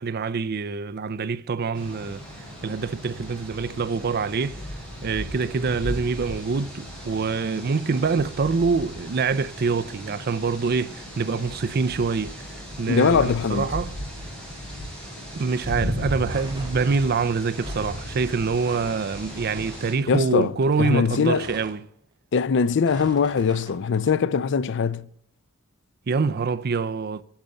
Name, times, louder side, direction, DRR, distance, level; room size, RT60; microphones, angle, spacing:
voice 1, 0.0-2.2 2.6-4.6 5.0-13.9 15.3-21.8 26.1-27.2, right 4 dB, 50° right, 0.5 m, -25 dB
sound 1, 1.7-19.9, equal, 5° left, 4.7 m, -36 dB
voice 2, 12.9-13.7 20.1-20.5 20.8-21.4 22.3-25.1, left 6 dB, 60° left, 0.4 m, -22 dB
sound 2, 15.9-17.0 17.5-18.0 18.5-19.0 19.3-19.8 20.1-21.7 22.1-22.2 22.9-23.7 23.9-24.1, right 1 dB, 20° right, 3.0 m, -42 dB
10.5 x 7.0 x 7.7 m
head